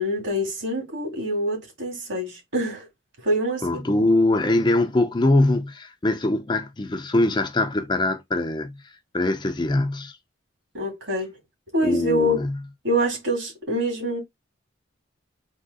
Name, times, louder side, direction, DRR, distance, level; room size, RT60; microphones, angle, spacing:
voice 1, 0.0-2.9 3.2-3.8 10.7-11.4 11.7-12.4 12.8-14.2, equal, 60° right, 2.2 m, -25 dB
voice 2, 3.6-8.8 9.1-10.2 11.8-12.6, left 2 dB, 25° left, 0.5 m, -22 dB
3.7 x 2.9 x 4.0 m
head